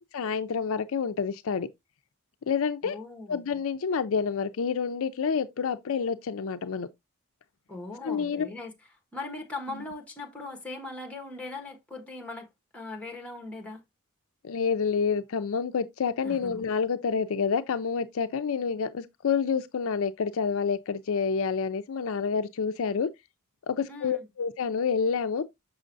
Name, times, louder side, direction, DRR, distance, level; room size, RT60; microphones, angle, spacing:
voice 1, 0.1-1.7 2.5-3.0 3.3-6.9 8.0-8.5 9.7-9.8 14.4-23.1 23.7-25.4, left 6 dB, 65° left, 0.5 m, -28 dB
voice 2, 2.8-3.4 7.7-8.7 9.1-13.8 16.2-16.7 23.9-24.3, left 2 dB, 5° left, 1.4 m, -39 dB
6.3 x 6.2 x 2.6 m
head